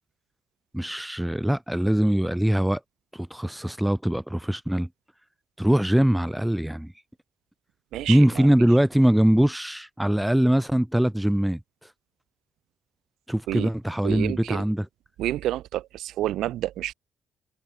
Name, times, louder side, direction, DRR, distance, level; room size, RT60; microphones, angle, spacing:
voice 1, 0.7-2.8 3.1-4.9 5.6-6.9 8.1-11.6 13.3-14.9, equal, 5° right, 3.2 m, -22 dB
voice 2, 7.9-8.5 13.5-13.7 14.0-14.6 15.2-16.9, right 14 dB, 85° right, 1.8 m, -29 dB
cardioid pair, 120°, 0 cm